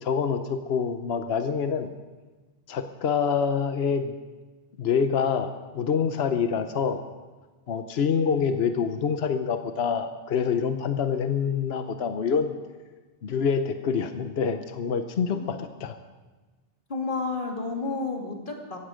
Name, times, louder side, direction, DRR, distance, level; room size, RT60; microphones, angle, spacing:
voice 1, 0.0-1.9 2.7-4.1 4.8-7.0 7.7-12.6 13.2-16.0, left 6 dB, 75° left, 8 dB, 1.1 m, -26 dB
voice 2, 16.9-18.8, left 3 dB, 55° left, 1 dB, 2.6 m, -31 dB
17.0 x 15.0 x 5.1 m, 1.3 s
omnidirectional pair, 1.1 m